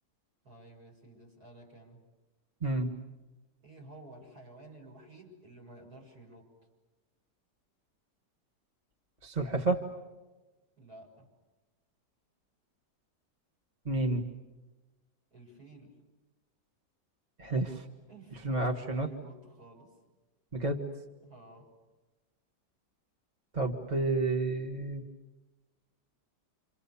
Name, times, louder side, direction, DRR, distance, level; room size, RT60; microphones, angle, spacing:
voice 1, 0.4-2.0 3.6-6.5 10.8-11.3 15.3-16.0 18.1-19.9 21.2-21.7, right 2 dB, 60° right, 0 dB, 7.4 m, -52 dB
voice 2, 9.2-9.9 13.9-14.2 17.4-17.9 18.4-19.1 20.5-20.8 23.5-25.0, right 2 dB, 25° right, 4 dB, 1.7 m, -30 dB
29.5 x 27.0 x 7.1 m, 1.2 s
omnidirectional pair, 1.8 m